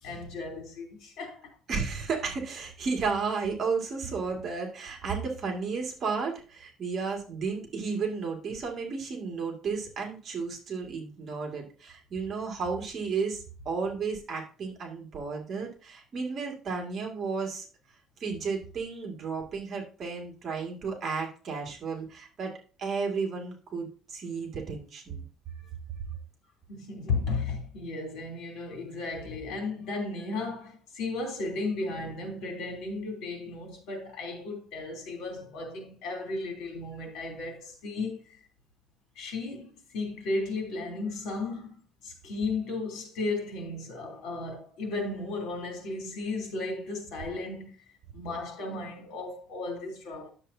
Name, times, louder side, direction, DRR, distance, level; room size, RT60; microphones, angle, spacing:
voice 1, 0.0-1.5 4.0-4.1 26.7-38.5 39.1-47.8 48.1-50.3, left 3 dB, 70° left, 3.3 m, -35 dB
voice 2, 1.7-17.7 18.2-25.2, right 5 dB, 35° right, 2.2 m, -33 dB
10.5 x 7.2 x 2.8 m
cardioid pair, 155°, 0 cm